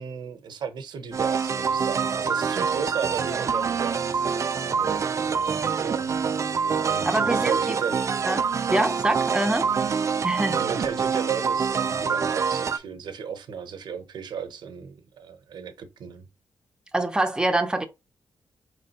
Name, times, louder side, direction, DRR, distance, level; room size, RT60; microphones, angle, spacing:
voice 1, 0.0-6.5 6.8-8.0 10.6-16.3, right 7 dB, 80° right, 0.8 m, -35 dB
sound 1, 1.1-12.8, right 6 dB, 45° right, 0.4 m, -26 dB
voice 2, 7.0-7.8 8.3-9.7 10.2-10.6 16.9-17.8, right 2 dB, 10° right, 0.7 m, -25 dB
4.8 x 3.2 x 2.8 m
cardioid pair, 90°, 7 cm